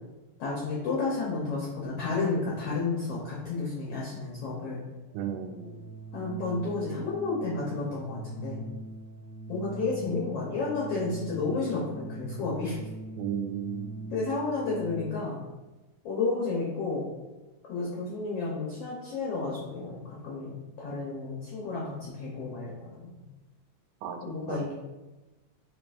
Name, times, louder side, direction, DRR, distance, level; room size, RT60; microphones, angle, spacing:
voice 1, 0.4-4.8 6.1-8.6 9.5-12.8 14.1-15.4 16.0-17.1 17.7-20.5 20.8-23.1 24.2-24.7, left 3 dB, 80° left, -5 dB, 1.3 m, -31 dB
Organ, 5.1-15.4, right 3 dB, 65° right, 1.1 m, -42 dB
voice 2, 5.1-5.8 13.2-14.0 24.0-24.6, right 8 dB, 85° right, 5 dB, 2.2 m, -35 dB
6.4 x 3.4 x 2.4 m, 1.1 s
omnidirectional pair, 3.8 m